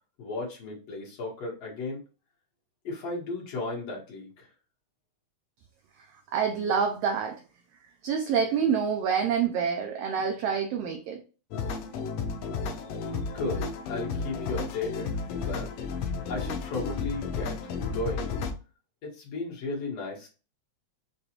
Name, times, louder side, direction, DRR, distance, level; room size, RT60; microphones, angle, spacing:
voice 1, 0.2-2.0 2.8-4.5 13.0-13.1 13.3-15.1 15.4-15.7 16.3-18.3 19.0-20.3, left 3 dB, 60° left, 2.3 m, -35 dB
voice 2, 6.3-7.4 8.0-11.2, right 7 dB, 85° right, 1.4 m, -27 dB
sound 1, 11.5-18.5, left 5 dB, 75° left, 1.7 m, -33 dB
6.6 x 2.4 x 2.8 m
omnidirectional pair, 3.4 m